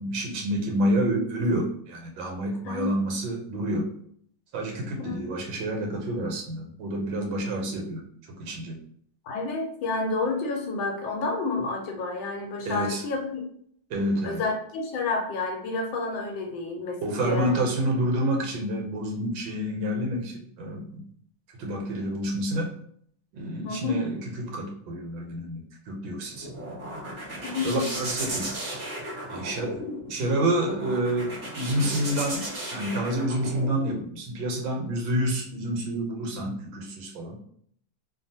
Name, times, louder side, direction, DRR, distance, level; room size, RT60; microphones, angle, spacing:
voice 1, 0.0-3.9 4.5-8.0 8.4-8.8 12.7-13.0 13.9-14.4 17.0-21.0 21.6-22.7 23.3-26.5 27.6-28.5 29.3-29.8 30.1-37.4, right 1 dB, 85° right, 1 dB, 1.4 m, -28 dB
voice 2, 2.6-3.3 5.0-5.2 9.3-13.4 14.2-17.6 23.6-24.0 27.4-28.0, left 3 dB, 80° left, 2 dB, 1.3 m, -30 dB
sound 1, 26.1-34.0, right 1 dB, 45° right, 1.1 m, -35 dB
3.1 x 2.3 x 2.6 m, 0.64 s
omnidirectional pair, 2.1 m